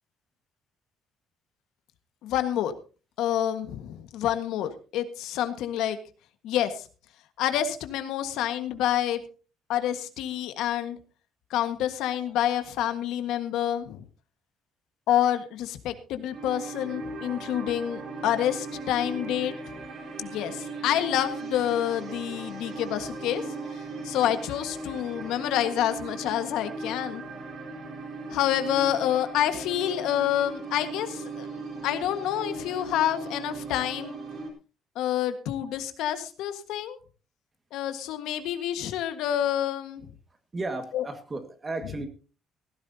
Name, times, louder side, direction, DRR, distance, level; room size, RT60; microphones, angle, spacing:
voice 1, 2.2-2.7 3.2-6.0 6.4-6.9 7.4-9.2 9.7-11.0 11.5-14.0 15.1-19.5 20.2-23.4 24.0-27.2 28.3-31.5 31.8-34.2 35.0-37.0 37.7-40.1 40.9-41.1, left 11 dB, 85° left, 9 dB, 1.6 m, -28 dB
sound 1, 16.3-34.5, right 3 dB, 50° right, 4.1 m, -38 dB
voice 2, 40.5-42.1, right 2 dB, 20° right, 8 dB, 1.8 m, -34 dB
16.5 x 15.0 x 2.8 m, 0.35 s
cardioid pair, 165°, 0 cm